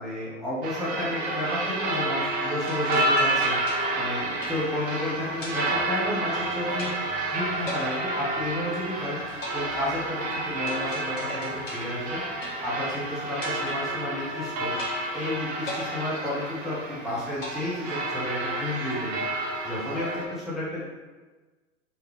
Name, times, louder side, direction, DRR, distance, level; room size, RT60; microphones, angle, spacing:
voice 1, 0.0-6.9 7.3-9.2 9.5-14.7 15.1-20.8, left 1 dB, ahead, -9 dB, 1.1 m, -32 dB
sound 1, 0.6-20.2, right 2 dB, 20° right, 0.6 m, -30 dB
sound 2, 2.7-5.0 5.4-6.4 6.8-7.3 7.7-8.9 9.4-13.0 13.4-14.4 14.8-15.3 15.7-16.9 17.4-18.4, left 1 dB, 75° left, 1.3 m, -40 dB
4.0 x 3.2 x 3.1 m, 1.3 s
figure-of-eight pair, 105°, 38 cm